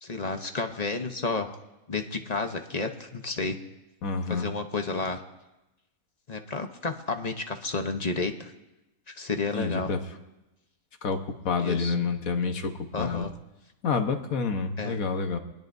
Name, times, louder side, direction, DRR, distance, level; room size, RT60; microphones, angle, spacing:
voice 1, 0.0-1.6 1.9-3.6 4.3-5.2 6.3-8.5 9.2-9.9 11.6-11.9 12.9-13.3 14.8-15.0, left 3 dB, 35° left, 5 dB, 0.8 m, -31 dB
voice 2, 4.0-4.5 9.5-10.1 11.0-13.3 13.8-15.4, left 4 dB, 65° left, 6 dB, 1.6 m, -28 dB
23.5 x 20.0 x 2.7 m, 1.0 s
omnidirectional pair, 1.6 m